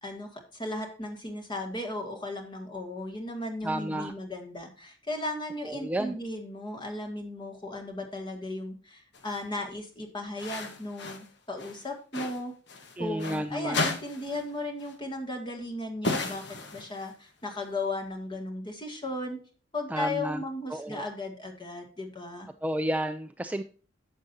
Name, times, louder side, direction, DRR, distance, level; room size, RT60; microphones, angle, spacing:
voice 1, 0.0-12.5 13.0-16.4 16.7-19.4 19.7-22.5, left 2 dB, 25° left, 4 dB, 2.0 m, -36 dB
voice 2, 3.6-4.1 5.6-6.1 13.0-13.9 19.9-20.4 20.7-21.0 22.6-23.6, right 1 dB, 10° right, 7 dB, 0.4 m, -31 dB
sound 1, 9.1-9.4 10.4-11.3 11.6-13.4 13.7-14.5 14.8-15.0 16.0-17.2, left 3 dB, 65° left, 1.3 m, -34 dB
11.0 x 7.6 x 2.7 m, 0.39 s
head